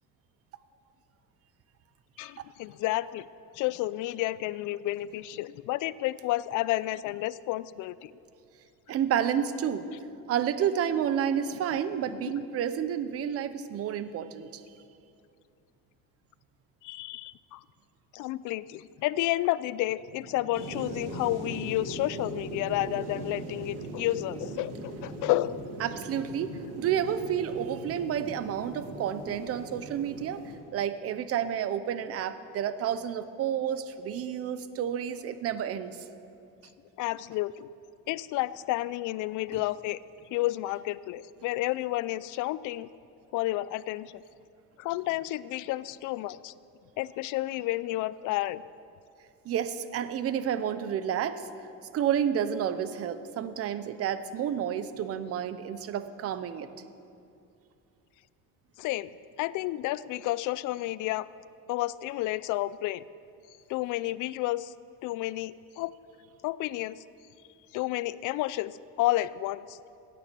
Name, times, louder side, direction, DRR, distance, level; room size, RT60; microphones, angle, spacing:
voice 1, 2.2-3.3 3.5-8.1 11.5-11.8 12.2-12.5 16.8-17.6 18.1-25.6 26.5-26.7 37.0-37.7 38.1-40.0 40.3-42.9 43.3-44.1 44.8-46.5 47.0-48.6 58.8-61.3 61.7-63.0 63.7-64.7 65.0-65.9 66.4-67.0 67.7-69.8, left 16 dB, 60° left, 18 dB, 0.5 m, -31 dB
voice 2, 8.9-9.9 10.3-14.5 25.8-30.4 30.7-36.0 39.5-39.6 49.4-51.4 51.9-56.7, right 9 dB, 40° right, 13 dB, 0.7 m, -30 dB
sound 1, 20.5-30.5, right 2 dB, 90° right, 2.9 m, -40 dB
16.5 x 9.3 x 6.9 m, 2.5 s
cardioid pair, 140°, 35 cm